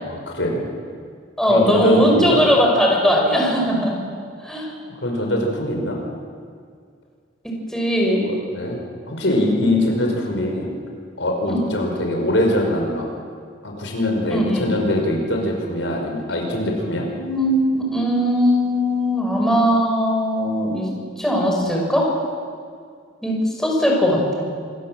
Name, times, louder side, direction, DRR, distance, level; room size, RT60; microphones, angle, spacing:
voice 1, 0.0-0.6 1.4-2.4 5.0-6.0 8.3-8.8 9.1-10.8 11.2-13.1 13.6-17.1, left 1 dB, 80° left, 1 dB, 5.4 m, -22 dB
voice 2, 1.4-3.9 4.4-4.7 7.4-8.2 11.5-11.6 14.3-14.6 17.1-20.9 21.2-22.1 23.2-24.5, equal, 5° left, -2 dB, 5.6 m, -19 dB
26.5 x 20.5 x 7.7 m, 2.1 s
head